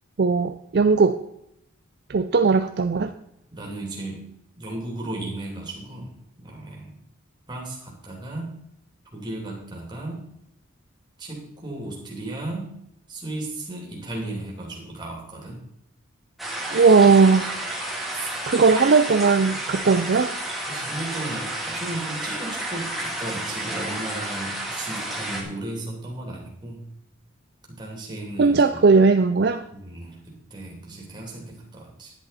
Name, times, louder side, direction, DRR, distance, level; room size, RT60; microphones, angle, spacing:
voice 1, 0.2-1.2 2.1-3.1 16.7-17.6 18.5-20.3 28.4-29.6, right 4 dB, 50° right, 8 dB, 0.4 m, -18 dB
voice 2, 3.5-4.3 4.6-6.9 7.5-8.6 9.1-10.2 11.2-12.8 13.1-15.6 18.1-18.3 20.7-26.9 27.7-28.8 29.7-32.1, right 2 dB, 20° right, -2 dB, 2.9 m, -35 dB
sound 1, 16.4-25.4, right 1 dB, ahead, 1.9 m, -31 dB
10.5 x 10.5 x 4.2 m, 0.78 s
head